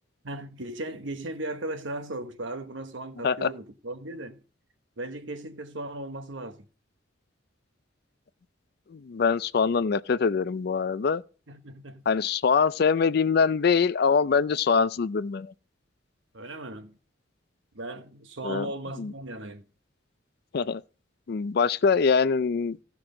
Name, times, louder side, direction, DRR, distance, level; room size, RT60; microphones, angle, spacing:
voice 1, 0.2-4.4 5.0-6.7 11.5-12.0 16.3-16.9 17.7-19.7, right 2 dB, 75° right, 1.1 m, -37 dB
voice 2, 8.9-11.2 12.1-15.5 18.4-18.7 19.0-19.1 20.5-20.8 21.3-22.8, left 5 dB, 55° left, 0.4 m, -24 dB
15.5 x 6.1 x 3.8 m
head